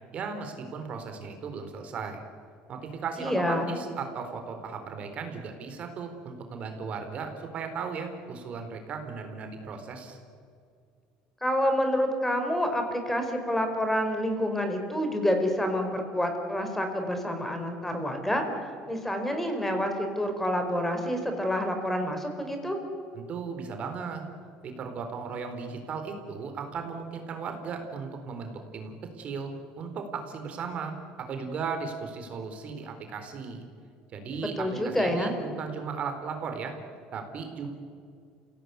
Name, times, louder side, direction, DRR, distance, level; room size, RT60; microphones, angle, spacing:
voice 1, 0.1-2.2 2.7-10.2 23.1-24.2 24.6-33.6 34.1-36.8 37.1-37.7, right 5 dB, 45° right, 5 dB, 4.1 m, -36 dB
voice 2, 3.2-3.7 11.4-18.4 18.9-22.8 34.4-35.4, equal, 10° left, 5 dB, 4.8 m, -28 dB
27.5 x 17.5 x 9.7 m, 2.3 s
supercardioid pair, 95°, 3 cm